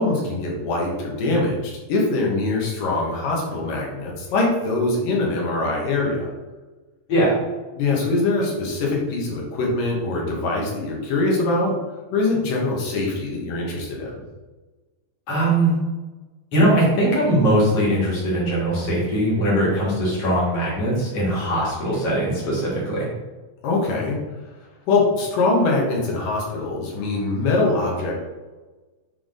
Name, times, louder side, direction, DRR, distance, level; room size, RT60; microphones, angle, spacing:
voice 1, 0.0-6.3 7.8-11.8 12.1-14.2 23.6-24.2 24.9-28.1, left 2 dB, 75° left, -2 dB, 2.8 m, -23 dB
voice 2, 15.3-15.7 16.5-23.1, right 1 dB, 50° left, -5 dB, 2.6 m, -20 dB
7.8 x 3.6 x 3.7 m, 1.2 s
omnidirectional pair, 4.0 m